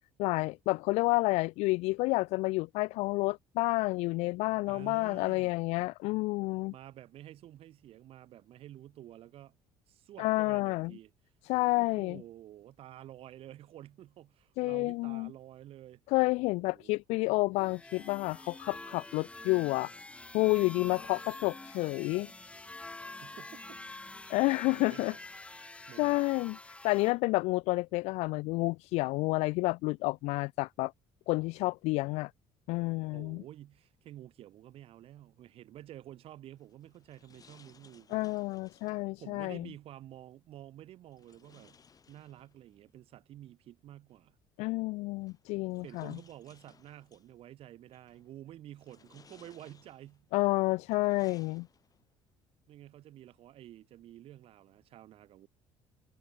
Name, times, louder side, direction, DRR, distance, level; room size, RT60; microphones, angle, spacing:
voice 1, 0.2-6.7 10.2-10.9 11.4-12.2 14.6-15.3 16.1-19.9 20.3-22.3 24.3-25.1 26.0-26.6 26.8-30.9 31.3-32.3 32.7-33.4 38.1-39.7 44.6-46.2 50.3-51.7, left 23 dB, 85° left, 0.5 m, -30 dB
voice 2, 4.7-5.5 6.7-9.6 9.9-11.1 11.8-16.0 16.6-17.0 23.2-23.8 24.3-24.4 24.7-25.2 25.9-26.3 33.1-38.3 39.2-41.8 42.1-44.4 45.7-50.3 52.7-55.5, right 13 dB, 60° right, 3.4 m, -50 dB
sound 1, 17.5-27.1, left 2 dB, 10° left, 1.2 m, -47 dB
sound 2, 36.6-39.1 41.1-42.8 44.1-44.2 45.2-47.3 47.9-48.3 48.7-50.2 50.7-52.1, left 6 dB, 35° left, 5.2 m, -62 dB
cardioid pair, 110°, 11 cm